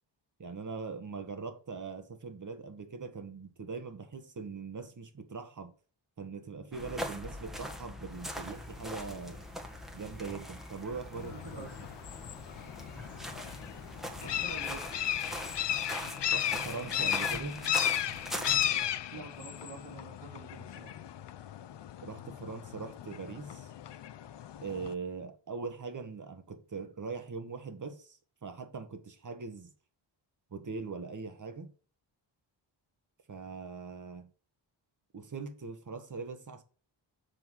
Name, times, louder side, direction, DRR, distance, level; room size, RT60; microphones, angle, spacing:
voice 1, 0.4-5.7 6.2-9.4 9.9-11.7 16.3-17.6 22.0-23.7 24.6-29.7 30.5-31.7 33.3-34.3 35.1-36.6, right 4 dB, 40° right, 1.5 m, -41 dB
sound 1, 6.7-18.9, equal, ahead, 1.5 m, -42 dB
sound 2, 8.1-15.7, left 2 dB, 20° left, 1.9 m, -53 dB
voice 2, 10.9-11.8 14.2-14.9 18.3-20.9, right 4 dB, 80° right, 3.2 m, -48 dB
sound 3, 11.2-24.9, left 11 dB, 65° left, 0.7 m, -35 dB
7.9 x 3.5 x 6.2 m
cardioid pair, 70°, 45 cm